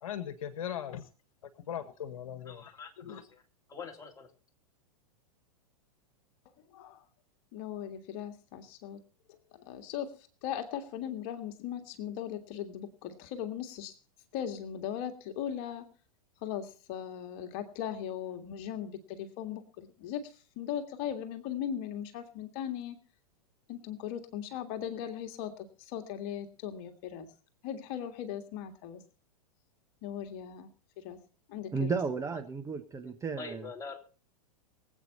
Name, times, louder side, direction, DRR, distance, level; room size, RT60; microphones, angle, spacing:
voice 1, 0.0-1.1 1.6-3.2, left 9 dB, 60° left, 11 dB, 1.6 m, -39 dB
voice 2, 2.5-3.4 3.7-4.3 33.4-34.0, left 5 dB, 15° left, 1 dB, 3.2 m, -44 dB
voice 3, 7.5-9.0 9.3-9.4 9.7-10.1 10.4-13.9 14.3-15.9 16.4-23.0 23.7-27.3 27.6-29.0 30.0-30.7 31.0-31.2 31.5-32.0, left 9 dB, 45° left, 7 dB, 1.9 m, -38 dB
voice 4, 31.7-33.7, right 4 dB, 15° right, 7 dB, 1.3 m, -33 dB
23.5 x 8.5 x 4.2 m, 0.40 s
figure-of-eight pair, 100°, 19 cm